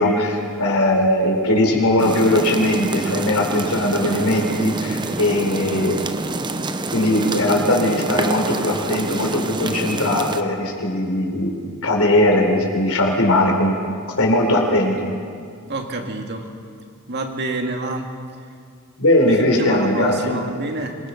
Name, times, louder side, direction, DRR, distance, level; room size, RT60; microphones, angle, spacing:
voice 1, 0.0-6.0 6.9-11.5 11.8-13.8 14.2-15.1 19.0-20.4, left 1 dB, 75° left, 1 dB, 4.3 m, -19 dB
sound 1, 2.0-10.4, right 2 dB, 20° right, 0.7 m, -27 dB
voice 2, 15.7-16.5 17.1-18.1 19.3-21.0, right 2 dB, 50° right, 3 dB, 2.1 m, -28 dB
26.0 x 21.0 x 5.8 m, 2.2 s
head